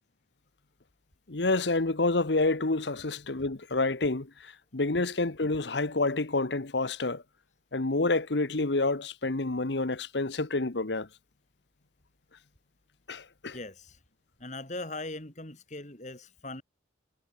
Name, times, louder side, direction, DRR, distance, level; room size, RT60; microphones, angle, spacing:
voice 1, 1.3-7.2 7.7-11.1 13.1-13.6, left 2 dB, 80° left, 1.3 m, -28 dB
voice 2, 13.5-14.0 14.4-16.6, left 2 dB, 40° left, 3.7 m, -40 dB
head